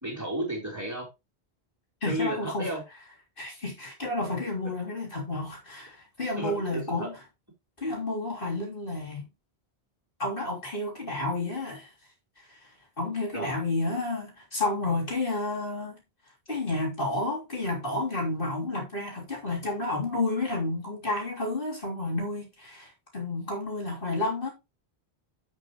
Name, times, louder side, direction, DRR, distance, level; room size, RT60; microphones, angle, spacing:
voice 1, 0.0-1.1 2.1-2.8 6.4-7.1 13.3-13.6, equal, 15° right, 4.1 m, -33 dB
voice 2, 2.0-2.8 3.4-7.2 7.8-9.2 10.2-11.9 12.4-16.0 16.5-24.5, left 2 dB, 55° left, 3.6 m, -31 dB
12.0 x 6.2 x 3.1 m
omnidirectional pair, 1.1 m